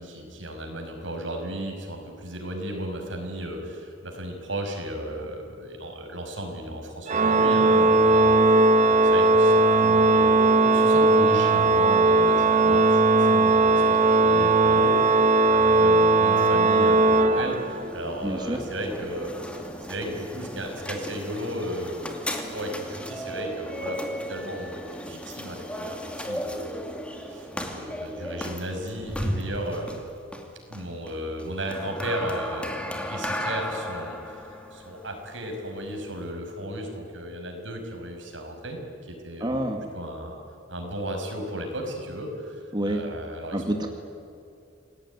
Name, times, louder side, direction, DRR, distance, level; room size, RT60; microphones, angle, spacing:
voice 1, 0.0-19.3 19.9-22.2 22.5-26.9 27.3-30.0 30.7-39.5 39.9-40.4 40.7-43.9, right 1 dB, 75° right, 3 dB, 5.8 m, -35 dB
Organ, 7.1-18.0, right 2 dB, 40° right, 1.2 m, -18 dB
sound 1, 17.2-36.3, equal, 5° left, 2.5 m, -35 dB
voice 2, 18.2-18.6 39.4-39.8 42.7-43.0 43.5-43.9, right 1 dB, 25° right, 3 dB, 2.0 m, -27 dB
27.5 x 18.5 x 9.6 m, 2.5 s
head